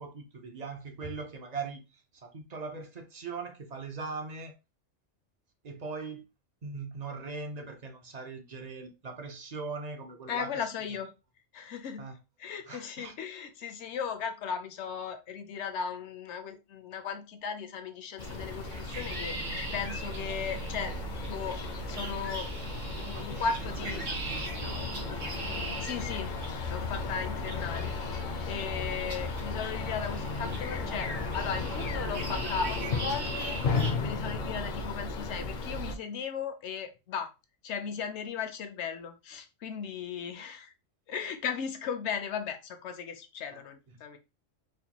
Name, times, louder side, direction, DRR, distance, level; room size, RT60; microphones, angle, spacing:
voice 1, 0.0-4.5 5.6-6.2 6.6-10.7 12.0-12.1 12.7-13.1 23.1-25.3 28.8-29.1 43.5-43.6, right 4 dB, 45° right, 0.6 m, -41 dB
voice 2, 10.3-11.1 11.5-12.1 12.4-21.0 21.3-21.6 21.9-22.5 23.0-24.0 25.8-26.3 26.7-27.9 28.2-33.6 34.0-37.3 37.6-40.7 41.1-44.2, left 6 dB, 70° left, 0.9 m, -36 dB
Birds and more Wetzelsdorf, 18.2-36.0, left 3 dB, 55° left, 0.5 m, -35 dB
sound 1, 18.2-33.9, right 2 dB, 80° right, 1.3 m, -41 dB
4.3 x 2.2 x 2.9 m
omnidirectional pair, 1.3 m